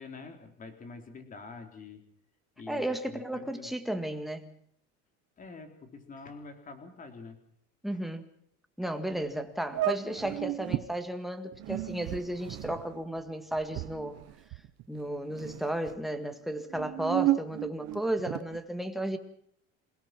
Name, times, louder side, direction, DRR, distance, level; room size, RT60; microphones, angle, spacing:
voice 1, 0.0-2.0 2.6-3.7 5.4-7.4, left 4 dB, 25° left, 6 dB, 3.9 m, -46 dB
voice 2, 2.7-4.5 7.8-8.2 8.8-14.2 14.9-19.2, right 1 dB, ahead, 6 dB, 1.8 m, -34 dB
sound 1, 9.1-9.3 9.7-10.9 11.5-15.0 15.3-16.0 16.6-18.6, right 16 dB, 55° right, 1.0 m, -33 dB
28.0 x 17.5 x 6.1 m, 0.69 s
cardioid pair, 155°, 31 cm